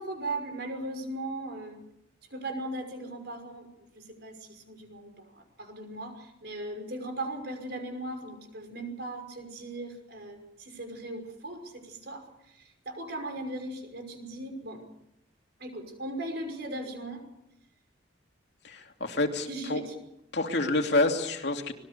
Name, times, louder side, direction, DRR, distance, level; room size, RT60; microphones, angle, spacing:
voice 1, 0.0-1.8 2.3-14.8 15.6-17.2 19.5-19.9, right 2 dB, 55° right, 6 dB, 5.8 m, -38 dB
voice 2, 18.6-19.8 20.3-21.7, left 2 dB, 60° left, 4 dB, 2.8 m, -28 dB
26.0 x 21.0 x 6.9 m, 0.84 s
head